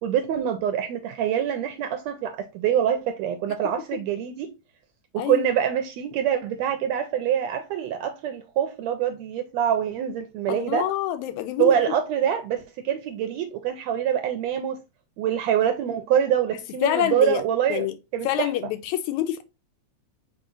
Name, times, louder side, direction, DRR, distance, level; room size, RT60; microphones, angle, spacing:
voice 1, 0.0-4.5 5.1-10.9 11.6-14.8 15.2-17.9 18.1-18.5, right 9 dB, 80° right, 1.6 m, -25 dB
voice 2, 10.5-11.8 16.8-17.4 17.7-17.9 18.2-19.4, left 12 dB, 80° left, 1.8 m, -26 dB
4.9 x 4.5 x 2.4 m
omnidirectional pair, 3.5 m